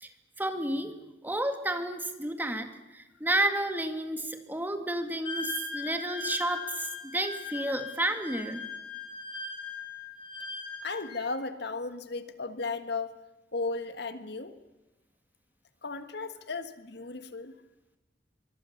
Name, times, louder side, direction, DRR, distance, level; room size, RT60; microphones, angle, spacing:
voice 1, 0.4-0.9 1.2-8.6, right 1 dB, 10° right, 7 dB, 2.0 m, -31 dB
Wind instrument woodwind instrument, 5.2-11.2, left 3 dB, 30° left, 4.9 m, -39 dB
voice 2, 10.8-13.1 13.5-14.6 15.8-17.5, left 3 dB, 65° left, 10 dB, 1.5 m, -35 dB
24.5 x 23.5 x 7.2 m, 1.1 s
head